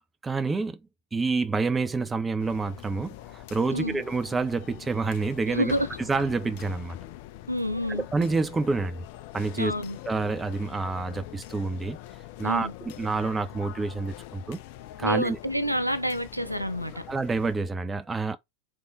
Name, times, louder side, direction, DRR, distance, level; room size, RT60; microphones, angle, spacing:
voice 1, 0.2-0.8 1.1-5.7 6.0-7.0 7.9-9.0 9.3-9.7 10.1-12.0 12.4-14.6 15.0-15.4 17.1-18.4, right 4 dB, 15° right, 0.5 m, -28 dB
sound 1, 2.4-17.6, left 14 dB, 45° left, 0.4 m, -44 dB
voice 2, 3.7-4.0 5.5-5.9 7.5-8.0 9.6-10.0 12.4-12.7 15.0-17.0, equal, 90° right, 0.5 m, -28 dB
3.6 x 3.6 x 3.8 m
figure-of-eight pair, 90°, 0 cm